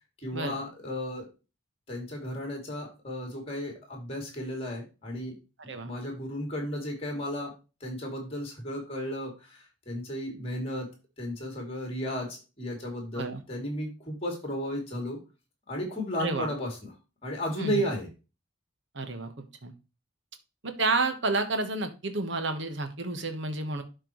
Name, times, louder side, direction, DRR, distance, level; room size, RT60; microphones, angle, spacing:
voice 1, 0.2-1.3 1.9-5.3 5.6-7.5 7.8-10.9 11.2-15.2 15.7-16.8 17.2-18.1, equal, 30° left, 1 dB, 2.8 m, -34 dB
voice 2, 16.2-16.5 17.6-17.8 18.9-19.7 20.6-23.8, right 3 dB, 60° right, 7 dB, 1.2 m, -30 dB
12.0 x 4.5 x 3.1 m, 0.31 s
head